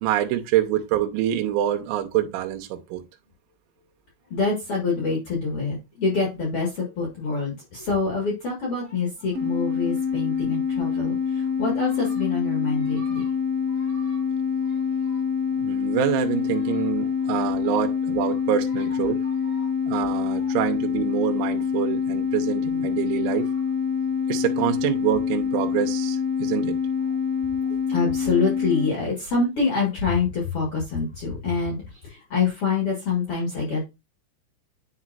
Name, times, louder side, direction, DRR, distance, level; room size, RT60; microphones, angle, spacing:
voice 1, 0.0-3.0 15.6-19.2 19.9-23.5 24.3-26.8, right 12 dB, 80° right, 3.2 m, -26 dB
voice 2, 4.3-13.3 13.7-14.2 15.0-15.2 16.7-16.8 19.0-19.7 20.3-20.4 27.6-33.9, left 4 dB, 75° left, 1.3 m, -26 dB
sound 1, 9.3-28.9, left 6 dB, 30° right, 1.2 m, -26 dB
10.5 x 4.2 x 2.5 m
omnidirectional pair, 5.7 m